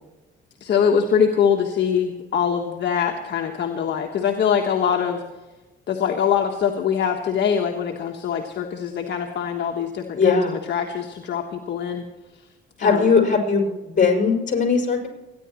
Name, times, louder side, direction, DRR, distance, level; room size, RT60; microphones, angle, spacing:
voice 1, 0.6-5.2 5.9-10.4 10.7-12.0 12.8-13.1, left 7 dB, 60° left, 2 dB, 1.4 m, -23 dB
voice 2, 10.1-10.6 12.8-15.1, left 5 dB, 40° left, 2 dB, 5.3 m, -19 dB
29.5 x 10.5 x 3.0 m, 1.1 s
cardioid pair, 90°, 20 cm